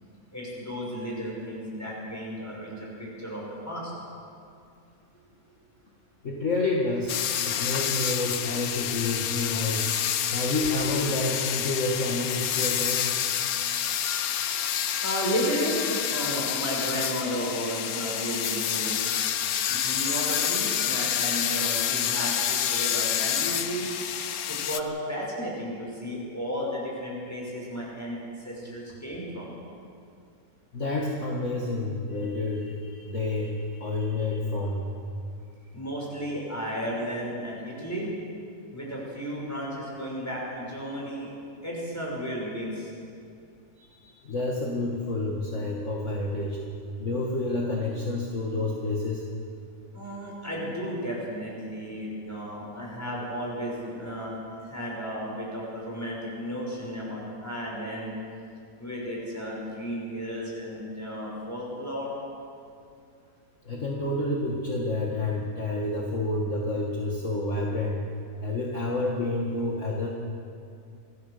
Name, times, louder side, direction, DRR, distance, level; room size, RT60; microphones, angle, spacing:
voice 1, 0.3-3.9 15.0-19.0 19.7-23.9 24.5-29.5 35.7-38.1 38.7-41.3 41.6-42.9 49.9-58.1 58.8-62.1, equal, 10° left, -4 dB, 6.0 m, -33 dB
voice 2, 6.2-7.2 7.5-9.9 10.3-13.1 30.7-34.9 43.8-46.6 47.0-49.2 63.6-68.0 68.4-70.1, left 2 dB, 45° left, -2 dB, 2.3 m, -29 dB
sound 1, 7.1-24.8, left 9 dB, 65° left, 1.2 m, -28 dB
25.5 x 16.0 x 6.8 m, 2.4 s
omnidirectional pair, 1.8 m